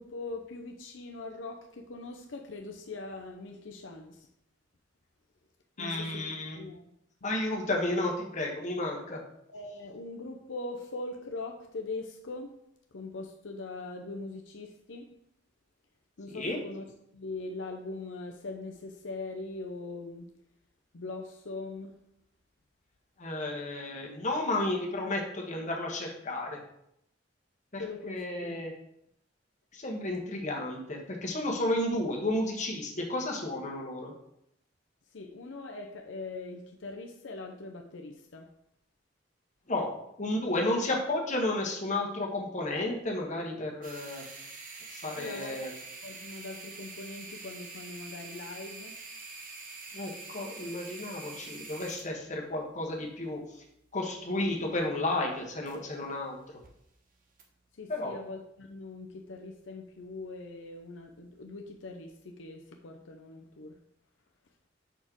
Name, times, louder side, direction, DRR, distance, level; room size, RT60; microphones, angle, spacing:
voice 1, 0.0-4.3 5.8-6.9 9.5-12.6 12.9-15.1 16.2-16.8 17.1-20.3 20.9-22.0 27.8-28.6 35.1-38.5 45.2-45.6 46.0-49.0 57.7-63.8, left 3 dB, 85° left, 3 dB, 0.7 m, -41 dB
voice 2, 5.8-6.6 7.2-9.2 16.3-16.6 23.2-26.6 27.7-27.8 28.1-28.7 29.7-34.1 39.7-44.2 44.9-45.7 49.9-53.6 53.9-56.4 57.9-58.1, left 1 dB, 40° left, 0 dB, 1.4 m, -32 dB
sound 1, 43.8-56.1 56.4-56.7 57.4-57.5, right 3 dB, 45° right, 1.1 m, -46 dB
5.2 x 4.3 x 6.1 m, 0.76 s
head